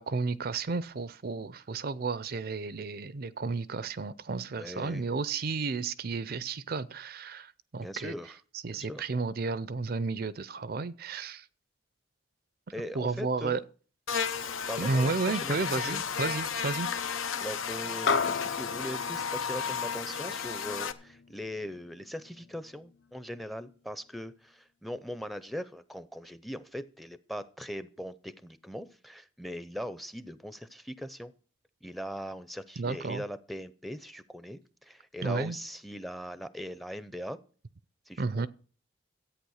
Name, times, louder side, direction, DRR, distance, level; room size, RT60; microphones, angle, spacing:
voice 1, 0.0-8.1 8.6-11.5 12.9-13.6 14.8-16.9 32.8-33.2 35.2-35.6 38.2-38.5, right 4 dB, 50° right, 0.5 m, -32 dB
voice 2, 4.5-5.0 7.8-8.4 8.7-9.0 12.7-13.6 14.7-15.2 15.4-15.6 15.9-16.0 17.4-31.3 31.8-37.4 38.1-38.5, equal, ahead, 0.6 m, -40 dB
Buzz, 14.1-20.9, left 7 dB, 85° left, 1.0 m, -33 dB
sound 1, 18.1-22.7, left 5 dB, 60° left, 0.8 m, -34 dB
13.5 x 8.7 x 6.4 m
head